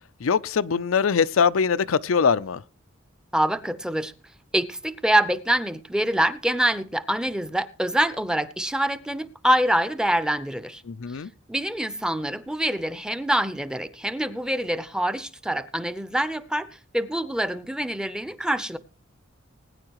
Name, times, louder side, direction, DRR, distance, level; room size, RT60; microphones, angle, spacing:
voice 1, 0.2-2.6 10.9-11.3, left 6 dB, 85° left, 0.5 m, -22 dB
voice 2, 3.3-4.1 4.5-10.8 11.5-16.7 16.9-18.8, right 1 dB, 5° right, 0.6 m, -25 dB
20.5 x 9.7 x 3.0 m
head